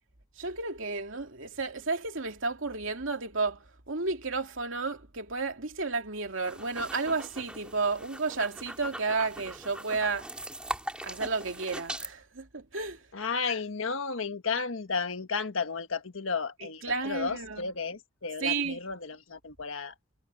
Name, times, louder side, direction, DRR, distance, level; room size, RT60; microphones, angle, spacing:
voice 1, 0.4-10.3 11.0-13.0 16.6-17.7 18.4-18.8, right 4 dB, 75° right, 2.6 m, -32 dB
sound 1, 6.3-12.1, right 1 dB, 5° right, 3.1 m, -41 dB
voice 2, 13.1-19.9, left 5 dB, 80° left, 1.5 m, -33 dB
head